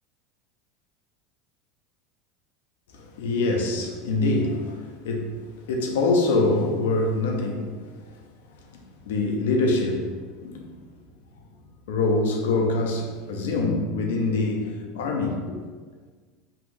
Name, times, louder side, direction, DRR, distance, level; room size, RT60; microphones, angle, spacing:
voice 1, 2.9-10.7 11.9-15.6, left 2 dB, 85° left, 2 dB, 0.7 m, -25 dB
5.6 x 2.5 x 3.3 m, 1.5 s
supercardioid pair, 105°, 0 cm